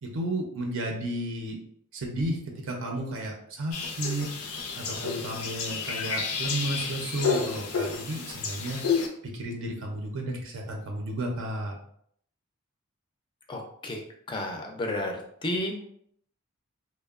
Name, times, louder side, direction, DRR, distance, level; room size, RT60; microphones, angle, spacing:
voice 1, 0.0-1.6 1.9-8.8 9.3-11.8, right 1 dB, 65° right, 0 dB, 0.5 m, -33 dB
sound 1, 3.7-9.1, left 5 dB, 80° left, 0.4 m, -30 dB
voice 2, 13.5-14.0 14.3-15.8, left 1 dB, 25° left, 2 dB, 0.4 m, -32 dB
2.8 x 2.0 x 2.3 m, 0.66 s
head